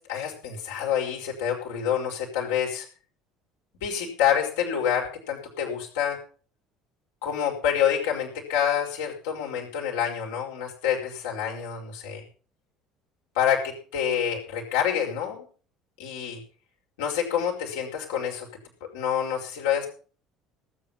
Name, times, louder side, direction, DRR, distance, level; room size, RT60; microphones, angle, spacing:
voice 1, 0.0-2.9 3.8-6.2 7.2-12.2 13.4-15.4 16.0-16.4 17.0-18.5 18.8-19.9, left 8 dB, 65° left, 0 dB, 5.4 m, -27 dB
18.5 x 9.3 x 5.7 m, 0.41 s
figure-of-eight pair, 60°, 0 cm